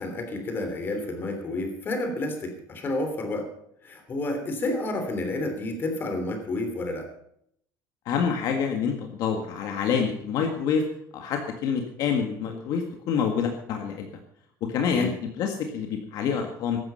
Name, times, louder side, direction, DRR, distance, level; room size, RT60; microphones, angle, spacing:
voice 1, 0.0-3.5 3.8-7.1 14.9-15.1, left 2 dB, 30° left, 5 dB, 3.2 m, -30 dB
voice 2, 8.1-10.8 11.1-14.1 14.7-15.1 15.4-16.8, left 6 dB, 60° left, 3 dB, 1.8 m, -27 dB
15.0 x 12.5 x 5.7 m, 0.72 s
cardioid pair, 160°, 7 cm